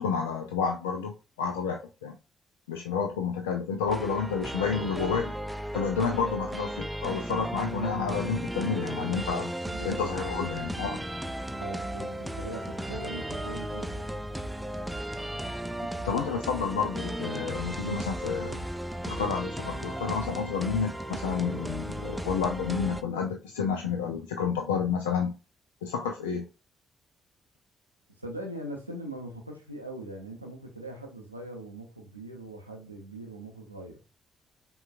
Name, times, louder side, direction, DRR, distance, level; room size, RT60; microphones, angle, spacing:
voice 1, 0.0-2.2 2.7-5.3 5.7-9.5 9.8-11.0 16.0-18.6 19.0-25.3 25.8-26.4, left 6 dB, 75° left, 0.3 m, -30 dB
sound 1, 3.9-23.0, right 1 dB, 5° right, 0.4 m, -35 dB
voice 2, 9.7-10.1 10.4-10.7 11.6-14.1 28.2-34.0, right 1 dB, 90° right, 0.5 m, -41 dB
5.4 x 2.3 x 2.4 m
figure-of-eight pair, 40°, 0 cm